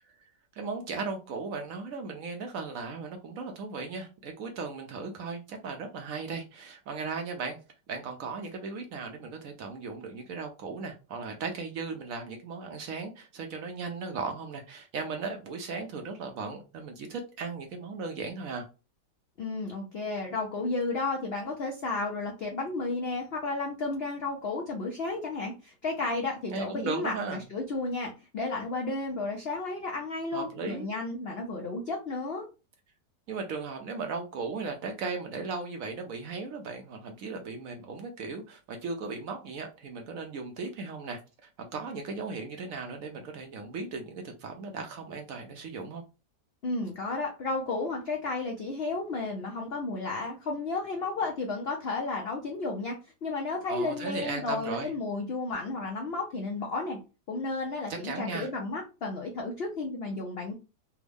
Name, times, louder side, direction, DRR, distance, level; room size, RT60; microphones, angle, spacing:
voice 1, 0.6-7.6 7.9-18.7 26.5-27.4 30.3-30.9 33.3-46.0 53.7-54.9 57.9-58.5, right 4 dB, 65° right, 0.9 m, -37 dB
voice 2, 19.4-32.4 46.6-57.0 57.3-60.5, left 3 dB, 70° left, 0.5 m, -33 dB
3.4 x 2.1 x 3.3 m
omnidirectional pair, 1.8 m